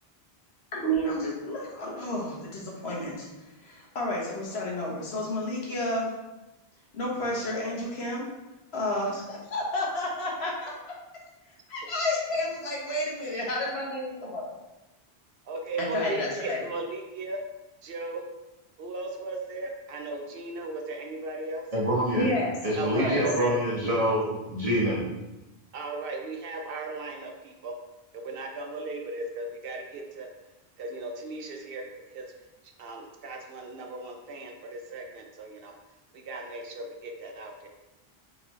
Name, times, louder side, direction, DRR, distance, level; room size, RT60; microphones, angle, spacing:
voice 1, 0.7-3.3 3.6-6.1 6.9-8.2 8.7-10.7 11.7-14.5 15.8-16.6 22.2-22.5 22.9-23.2, left 1 dB, 85° left, -3 dB, 1.3 m, -31 dB
voice 2, 15.4-17.4 17.8-18.2 18.8-21.7 22.8-23.5 24.0-24.1 25.7-27.7 28.1-30.3 30.8-32.3 32.8-35.7 36.1-37.7, right 2 dB, 70° right, 2 dB, 0.8 m, -36 dB
voice 3, 21.7-22.3 22.6-25.0, equal, 35° right, -6 dB, 1.3 m, -26 dB
3.8 x 3.7 x 3.1 m, 1.0 s
omnidirectional pair, 1.0 m